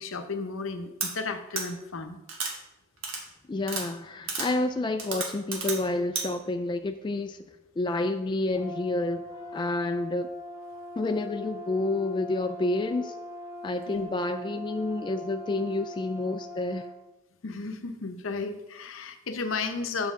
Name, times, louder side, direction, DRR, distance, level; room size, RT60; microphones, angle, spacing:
voice 1, 0.0-2.2 13.9-14.1 17.4-20.1, left 4 dB, 80° left, 8 dB, 0.7 m, -34 dB
sound 1, 1.0-1.1 1.5-1.6 2.3-2.5 3.0-3.2 3.6-3.8 4.3-4.5 5.0-5.8 6.1-6.2, right 4 dB, 70° right, 1.4 m, -31 dB
voice 2, 3.5-7.4 7.8-10.3 11.0-13.2 13.6-16.9, left 2 dB, 25° left, 7 dB, 0.3 m, -29 dB
Brass instrument, 8.5-17.0, left 1 dB, 10° right, 0.8 m, -41 dB
7.4 x 6.7 x 3.6 m, 1.0 s
head